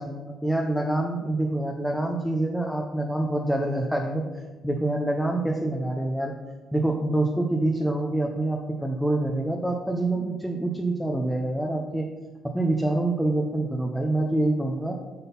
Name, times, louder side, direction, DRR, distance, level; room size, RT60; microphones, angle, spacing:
voice 1, 0.0-6.3 6.7-12.1 12.5-15.0, right 1 dB, ahead, 0 dB, 0.7 m, -26 dB
6.1 x 4.0 x 5.4 m, 1.3 s
cardioid pair, 80°, 0 cm